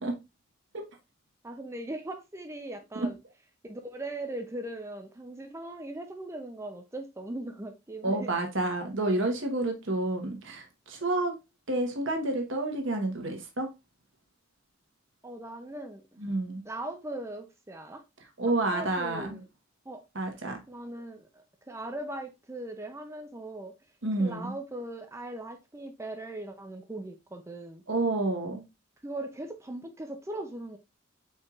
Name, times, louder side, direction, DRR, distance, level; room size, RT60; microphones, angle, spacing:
voice 1, 1.4-3.2 3.6-8.3 15.2-16.2 16.7-18.0 18.7-19.5 19.9-20.0 20.7-23.7 24.2-27.8 29.0-30.8, right 1 dB, 15° right, 0.4 m, -39 dB
voice 2, 8.0-11.3 11.7-13.7 16.2-16.6 18.4-19.4 20.1-20.6 24.0-24.5 27.9-28.7, right 2 dB, 60° right, 1.1 m, -29 dB
4.6 x 4.4 x 2.4 m
head